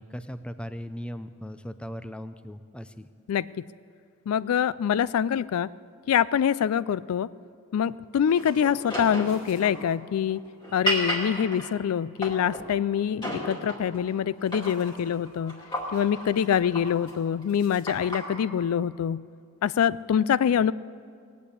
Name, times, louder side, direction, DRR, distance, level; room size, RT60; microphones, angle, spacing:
voice 1, 0.0-3.1, equal, 5° left, 11 dB, 0.4 m, -38 dB
voice 2, 4.3-5.7 6.1-7.3 7.7-10.4 10.7-15.6 15.9-19.2 19.6-20.7, left 8 dB, 80° left, 19 dB, 0.3 m, -25 dB
sound 1, 8.3-12.7 13.2-14.1 14.4-18.4, equal, 20° left, 2.5 m, -33 dB
19.5 x 8.4 x 8.5 m, 2.2 s
head